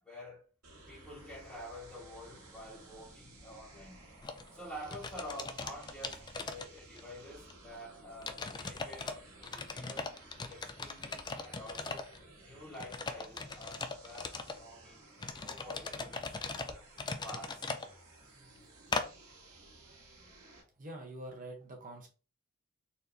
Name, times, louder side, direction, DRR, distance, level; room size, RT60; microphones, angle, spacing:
voice 1, 0.0-0.5 0.9-4.1 4.5-10.1 10.5-12.1 12.4-15.0 15.4-16.9 17.2-17.8, equal, 5° left, 1.7 m, -49 dB
sound 1, 0.6-20.6, right 2 dB, 80° right, 1.9 m, -56 dB
sound 2, 4.2-4.4 4.8-7.1 7.5-7.6 8.2-9.1 9.4-12.2 12.7-14.6 15.2-17.9 18.9-19.1, left 4 dB, 20° left, 0.4 m, -39 dB
voice 2, 20.8-22.1, right 1 dB, 40° right, 1.0 m, -45 dB
4.3 x 3.3 x 2.8 m
head